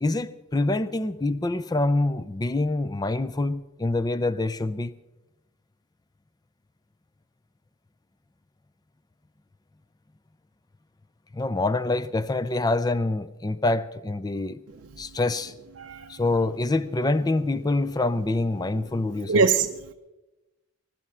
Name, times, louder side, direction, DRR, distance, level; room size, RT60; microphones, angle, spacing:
voice 1, 0.0-5.0 11.3-14.6 15.0-15.5 16.1-19.4, left 2 dB, 15° left, 0.4 m, -26 dB
voice 2, 15.8-16.2 18.9-19.9, right 5 dB, 55° right, 0.6 m, -24 dB
20.5 x 12.0 x 5.7 m
head